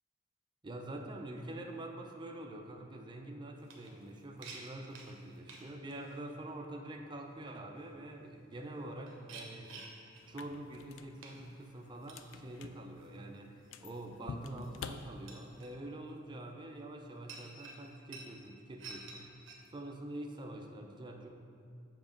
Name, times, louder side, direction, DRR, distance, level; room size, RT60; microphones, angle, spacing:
voice 1, 0.6-9.9 10.3-19.4 19.7-21.3, right 1 dB, 25° right, 3 dB, 0.5 m, -46 dB
sound 1, 3.6-6.2 8.2-8.3 8.8-10.4 10.6-11.0 11.2-11.7 12.0-12.4 13.0-13.1 13.6-14.1 14.6-15.0 15.3-15.7 17.3-19.2 19.4-19.7, right 4 dB, 85° right, 0.9 m, -51 dB
sound 2, 10.2-15.7, left 6 dB, 80° left, 0.3 m, -50 dB
7.2 x 3.0 x 5.1 m, 2.3 s
head